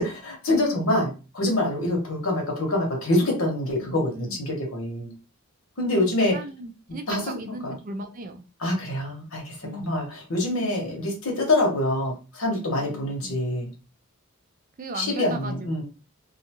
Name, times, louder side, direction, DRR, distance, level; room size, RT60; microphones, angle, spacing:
voice 1, 0.0-5.1 5.8-6.4 7.1-7.7 8.6-13.7 14.9-15.8, left 1 dB, 75° left, 1 dB, 1.0 m, -25 dB
voice 2, 3.8-4.4 6.3-8.4 9.6-10.0 12.8-13.4 14.8-15.8, right 2 dB, 40° right, 6 dB, 0.4 m, -37 dB
2.5 x 2.3 x 2.8 m, 0.32 s
head